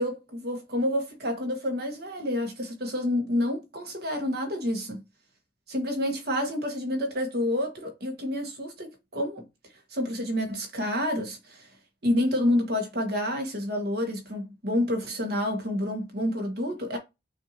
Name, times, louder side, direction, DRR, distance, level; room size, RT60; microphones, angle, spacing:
voice 1, 0.0-5.0 5.7-9.4 9.9-11.7 12.0-17.0, left 1 dB, 55° right, 1.3 m, -29 dB
6.0 x 2.6 x 2.9 m
head